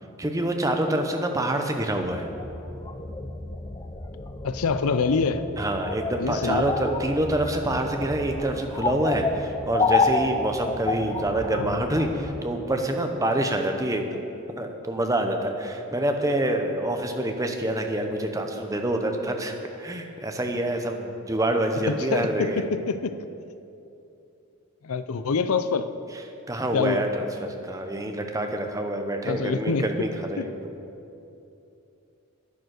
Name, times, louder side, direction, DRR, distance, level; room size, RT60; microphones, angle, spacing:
voice 1, 0.2-2.3 5.6-14.2 14.6-22.6 26.5-30.5, right 1 dB, 15° right, 4 dB, 0.8 m, -26 dB
sound 1, 2.0-12.4, left 3 dB, 20° left, 0.5 m, -30 dB
voice 2, 4.4-5.4 6.2-6.7 11.6-11.8 21.9-23.2 24.8-25.9 26.7-27.1 29.2-30.1 30.4-30.5, left 5 dB, 75° left, 11 dB, 0.5 m, -26 dB
10.5 x 9.2 x 6.5 m, 2.8 s
head